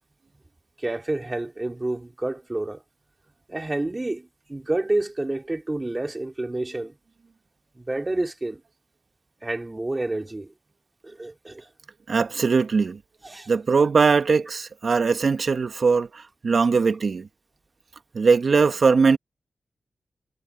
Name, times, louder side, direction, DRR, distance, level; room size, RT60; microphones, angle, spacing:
voice 1, 0.8-2.8 3.5-6.9 7.8-8.6 9.4-10.5 11.0-11.7 13.2-13.5, right 2 dB, 25° right, 3.2 m, -29 dB
voice 2, 12.1-13.0 13.5-17.3 18.1-19.2, right 5 dB, 65° right, 2.2 m, -20 dB
cardioid pair, 45°, 0 cm